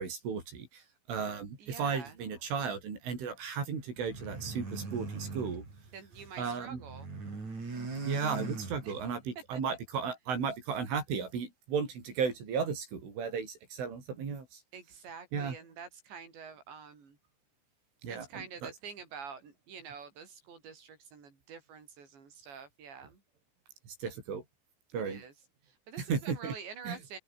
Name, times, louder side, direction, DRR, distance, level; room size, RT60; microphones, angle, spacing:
voice 1, 0.0-5.6 6.4-6.8 8.1-14.6 15.3-15.6 18.0-18.7 23.9-24.4 24.9-25.2 26.0-26.5 26.9-27.0, right 6 dB, 80° right, 8.6 m, -35 dB
voice 2, 1.6-2.2 5.9-7.1 8.8-9.0 9.5-9.8 14.7-17.2 18.1-23.2 24.9-25.3 25.6-27.2, right 6 dB, 65° right, 8.4 m, -47 dB
sound 1, 4.0-6.4 6.7-9.2, right 3 dB, 35° right, 7.6 m, -40 dB
open air
omnidirectional pair, 5.5 m